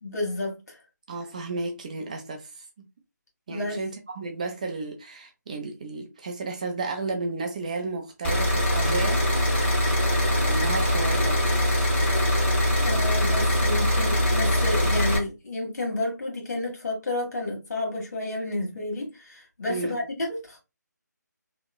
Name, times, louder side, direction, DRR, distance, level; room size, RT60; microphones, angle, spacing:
voice 1, 0.0-0.8 3.5-3.8 12.8-20.6, left 2 dB, 60° left, 1.3 m, -31 dB
voice 2, 1.1-2.7 3.5-9.2 10.2-11.4 19.7-20.0, right 3 dB, 25° right, 0.3 m, -33 dB
sound 1, 8.2-15.2, equal, 35° left, 1.3 m, -22 dB
2.9 x 2.1 x 2.3 m
figure-of-eight pair, 150°, 10 cm